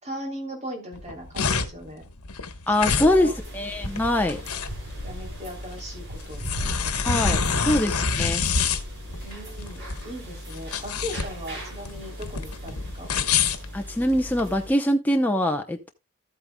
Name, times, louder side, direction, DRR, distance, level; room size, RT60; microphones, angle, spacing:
voice 1, 0.0-2.0 2.7-3.3 5.0-6.8 7.4-7.6 9.2-13.1, equal, 30° right, 3.1 m, -38 dB
sound 1, 0.9-14.5, left 5 dB, 85° left, 1.2 m, -27 dB
voice 2, 2.7-4.4 7.0-8.4 13.7-15.9, left 1 dB, 10° left, 0.7 m, -23 dB
sound 2, 2.9-14.7, equal, 50° right, 5.0 m, -38 dB
14.0 x 8.6 x 2.2 m
head